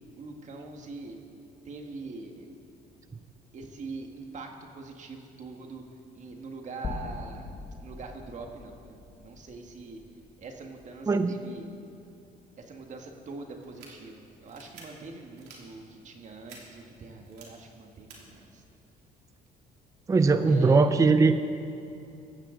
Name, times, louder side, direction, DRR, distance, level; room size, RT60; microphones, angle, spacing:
voice 1, 0.2-1.2 1.6-2.5 3.5-5.8 6.1-7.5 7.8-10.0 10.4-11.7 12.6-18.6 20.4-20.9, right 3 dB, 45° right, 3 dB, 1.7 m, -43 dB
sound 1, 6.8-11.1, left 4 dB, 30° left, 1.2 m, -42 dB
sound 2, 13.6-13.9 14.5-14.8 15.4-15.6 16.5-16.6 17.2-17.4 18.1-18.2, right 6 dB, 80° right, 3.1 m, -49 dB
voice 2, 20.1-21.5, right 4 dB, 20° right, 10 dB, 0.5 m, -20 dB
17.5 x 14.5 x 3.9 m, 2.7 s
cardioid pair, 110°, 17 cm